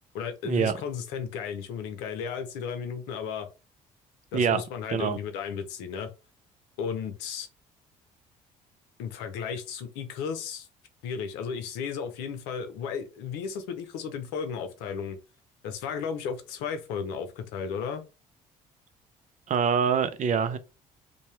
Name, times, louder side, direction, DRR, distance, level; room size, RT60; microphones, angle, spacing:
voice 1, 0.1-3.5 4.3-6.1 6.8-7.5 9.0-10.7 11.0-15.2 15.6-18.0, left 6 dB, 80° left, 0.6 m, -34 dB
voice 2, 19.5-20.6, right 6 dB, 45° right, 0.5 m, -25 dB
2.7 x 2.3 x 3.2 m
hypercardioid pair, 60°, 17 cm